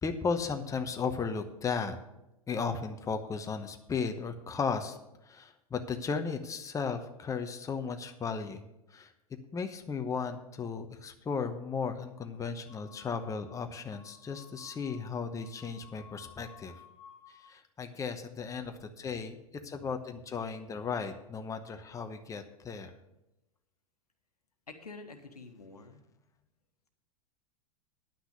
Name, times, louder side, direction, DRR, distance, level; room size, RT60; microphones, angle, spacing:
voice 1, 0.0-2.0 2.5-5.0 5.2-8.6 8.9-9.1 9.5-16.7 17.3-19.4 19.6-22.9, left 5 dB, 15° left, 6 dB, 1.0 m, -35 dB
sound 1, 12.6-17.5, left 7 dB, 80° right, 5.0 m, -56 dB
voice 2, 24.7-26.0, left 3 dB, 85° left, 5 dB, 1.4 m, -48 dB
10.5 x 6.0 x 8.1 m, 0.91 s
figure-of-eight pair, 95°, 19 cm